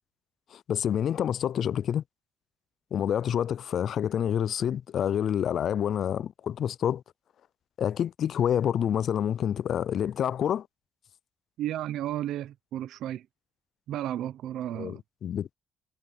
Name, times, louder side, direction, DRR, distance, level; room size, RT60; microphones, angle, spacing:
voice 1, 0.5-2.0 2.9-7.0 7.8-10.7 14.7-15.5, left 9 dB, 65° left, 0.3 m, -28 dB
voice 2, 11.6-13.2 13.9-15.0, right 12 dB, 80° right, 0.7 m, -33 dB
cardioid pair, 90°, 0 cm